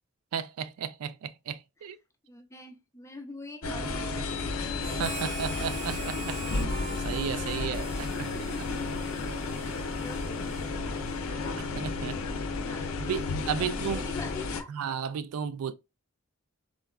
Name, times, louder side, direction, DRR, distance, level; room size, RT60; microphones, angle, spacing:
voice 1, 0.3-2.0 5.0-6.4 7.0-8.3 11.6-12.2 13.0-14.1 14.7-15.7, right 7 dB, 80° right, 0.3 m, -34 dB
voice 2, 2.3-4.3 8.2-9.2 9.6-10.6 12.5-13.3 13.5-14.7, left 2 dB, 15° left, 0.4 m, -44 dB
sound 1, 3.6-14.6, left 3 dB, 70° left, 0.5 m, -33 dB
Harmonica, 4.8-12.5, right 3 dB, 30° right, 0.8 m, -44 dB
Bass guitar, 6.6-11.3 11.5-12.8, left 2 dB, 60° right, 0.8 m, -51 dB
3.7 x 2.3 x 2.2 m
head